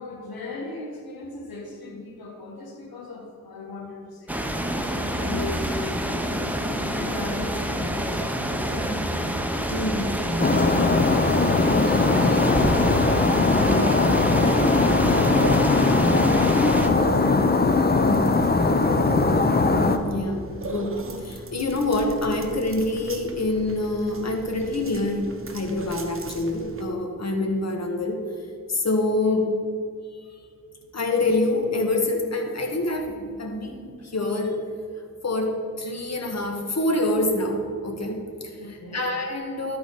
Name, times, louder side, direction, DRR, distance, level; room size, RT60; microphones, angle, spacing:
voice 1, 0.0-4.3 4.9-9.3 10.0-12.8 13.4-18.4 35.9-36.0 38.6-39.0, left 2 dB, 85° left, -1 dB, 1.8 m, -36 dB
sound 1, 4.3-16.9, equal, 5° right, 0.9 m, -27 dB
voice 2, 9.7-10.2 13.5-13.8 17.9-18.2 19.5-25.2 25.5-28.2 28.7-29.5 30.9-34.6 35.2-39.8, left 2 dB, 45° left, 2 dB, 1.6 m, -26 dB
sound 2, 10.4-20.0, left 3 dB, 30° left, 0.7 m, -20 dB
sound 3, 14.7-26.8, right 3 dB, 40° right, 1.0 m, -39 dB
13.0 x 4.8 x 4.1 m, 2.3 s
cardioid pair, 55°, 35 cm